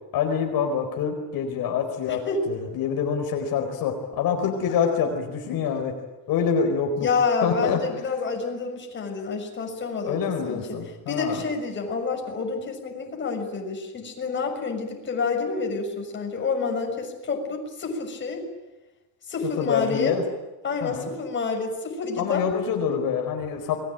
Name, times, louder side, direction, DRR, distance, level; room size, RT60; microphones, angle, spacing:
voice 1, 0.1-6.0 6.3-7.1 7.4-7.8 10.1-11.4 19.6-20.2 20.8-21.1 22.2-23.8, left 7 dB, 65° left, 4 dB, 4.5 m, -26 dB
voice 2, 2.1-2.4 7.0-10.8 11.1-18.4 19.3-20.1 20.6-22.4, left 4 dB, 30° left, 2 dB, 6.6 m, -28 dB
28.5 x 22.0 x 9.1 m, 1.1 s
cardioid pair, 145°, 37 cm